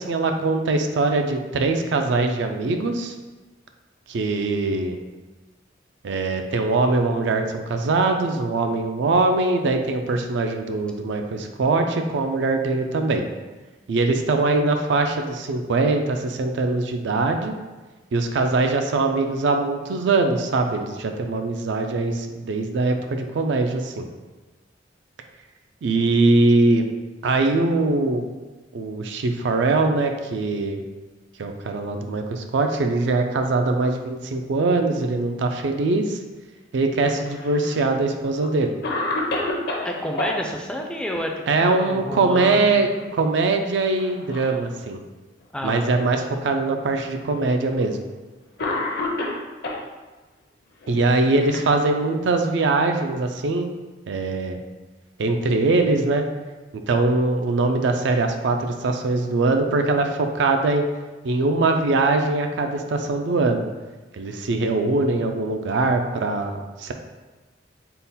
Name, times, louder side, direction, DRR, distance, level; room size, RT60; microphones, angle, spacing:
voice 1, 0.0-3.1 4.1-5.0 6.0-13.2 13.9-17.5 18.1-24.1 25.8-26.9 27.2-28.2 28.7-30.8 31.4-36.2 36.7-38.7 41.5-45.0 45.6-48.0 50.9-53.7 54.1-54.6 55.2-56.3 56.9-60.8 61.2-63.7 64.1-66.9, right 3 dB, 70° right, 5 dB, 0.4 m, -22 dB
Cough, 37.0-37.9 38.4-38.5 38.8-40.4 42.2-42.7 43.0-43.1 43.9-44.6 45.4-45.5 46.5-46.6 47.8-48.0 48.6-49.8 50.8-52.2, left 2 dB, 60° left, 0.6 m, -29 dB
voice 2, 39.8-42.8 45.5-45.9, equal, 5° left, 0 dB, 0.3 m, -30 dB
3.7 x 2.2 x 4.0 m, 1.2 s
head